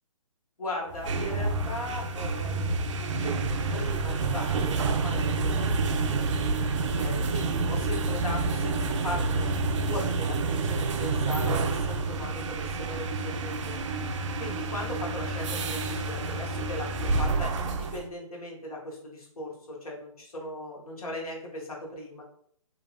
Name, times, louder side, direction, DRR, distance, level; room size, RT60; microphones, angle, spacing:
voice 1, 0.6-3.3 3.7-6.6 7.0-9.5 9.9-13.8 14.4-22.2, left 1 dB, 85° left, -2 dB, 1.2 m, -38 dB
sound 1, 0.9-18.0, right 3 dB, 55° right, 0.4 m, -28 dB
3.0 x 2.6 x 2.4 m, 0.66 s
hypercardioid pair, 155°, 18 cm